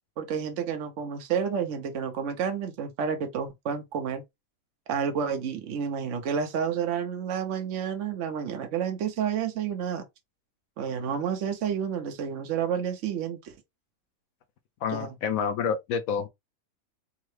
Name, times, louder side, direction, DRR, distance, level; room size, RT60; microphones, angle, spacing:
voice 1, 0.2-4.2 4.9-10.0 10.8-13.5 14.9-15.1, right 7 dB, 65° right, 1.0 m, -30 dB
voice 2, 14.8-16.3, left 7 dB, 75° left, 1.0 m, -28 dB
3.7 x 2.1 x 3.1 m
omnidirectional pair, 1.5 m